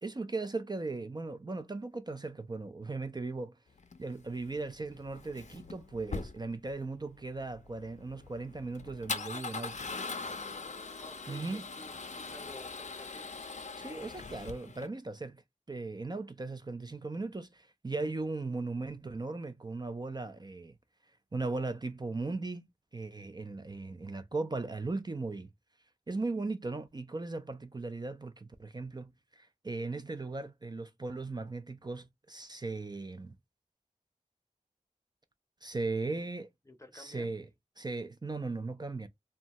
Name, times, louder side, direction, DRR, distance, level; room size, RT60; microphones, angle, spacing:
voice 1, 0.0-3.6 4.0-9.8 11.3-11.6 13.8-15.4 15.7-20.8 21.3-25.5 26.1-33.3 35.6-36.5 36.9-37.5 37.8-39.1, right 3 dB, 30° right, 0.4 m, -38 dB
Male speech man speaking / Car / Engine starting, 3.8-14.9, left 4 dB, 55° left, 0.5 m, -42 dB
voice 2, 10.9-13.4 36.6-37.3, left 1 dB, 20° left, 0.7 m, -52 dB
2.6 x 2.2 x 2.9 m
wide cardioid pair, 60°, 14 cm